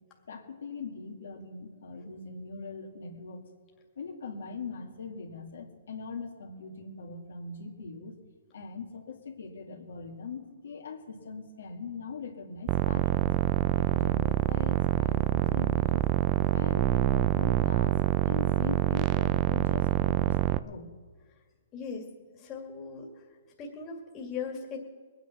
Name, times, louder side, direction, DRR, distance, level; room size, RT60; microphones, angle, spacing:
voice 1, 0.3-3.5 4.0-8.2 8.5-13.3 13.7-16.0 16.5-18.0 18.3-20.9, left 4 dB, 80° left, 2 dB, 2.2 m, -41 dB
sound 1, 12.7-20.6, right 15 dB, 25° right, 0.4 m, -26 dB
voice 2, 21.7-23.2 23.6-24.8, left 5 dB, 20° left, -1 dB, 2.2 m, -39 dB
21.0 x 9.4 x 5.8 m, 1.5 s
hypercardioid pair, 155°, 0 cm